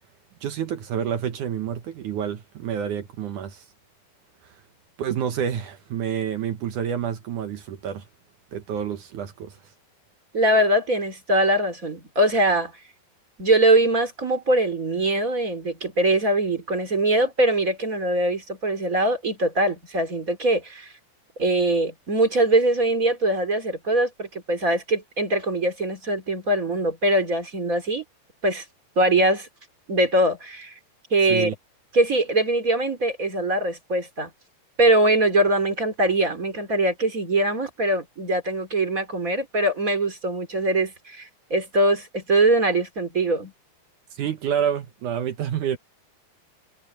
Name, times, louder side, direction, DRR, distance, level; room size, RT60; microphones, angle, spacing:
voice 1, 0.4-3.6 5.0-8.0 8.5-9.5 31.3-31.5 44.2-45.8, right 8 dB, 65° right, 2.2 m, -28 dB
voice 2, 10.3-12.7 13.4-20.9 21.4-28.0 28.4-28.6 29.0-29.5 29.9-30.7 31.1-31.5 31.9-34.3 34.8-43.5, right 1 dB, 25° right, 2.9 m, -22 dB
omnidirectional pair, 4.7 m